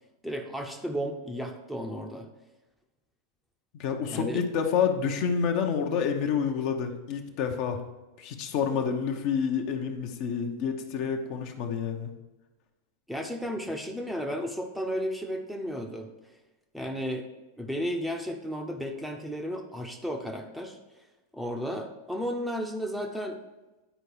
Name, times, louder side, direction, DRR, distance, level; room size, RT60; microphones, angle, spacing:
voice 1, 0.2-2.3 4.0-4.4 13.1-16.1 16.7-17.3 17.6-20.8 21.3-23.4, equal, ahead, 2 dB, 0.8 m, -33 dB
voice 2, 3.7-7.8 8.2-12.1, left 6 dB, 45° left, 4 dB, 0.9 m, -28 dB
10.0 x 4.7 x 4.7 m, 1.1 s
figure-of-eight pair, 90°, 0 cm